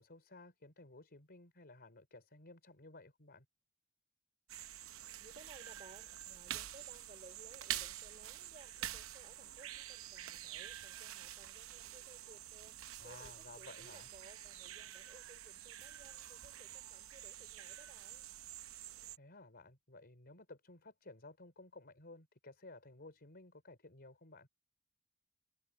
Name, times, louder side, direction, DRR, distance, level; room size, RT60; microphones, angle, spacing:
voice 1, 0.0-3.5 13.0-14.1 19.2-24.5, left 2 dB, 50° left, 4.3 m, -56 dB
sound 1, 4.5-19.2, right 12 dB, 65° right, 0.8 m, -47 dB
voice 2, 5.2-18.3, right 2 dB, 30° right, 3.3 m, -60 dB
head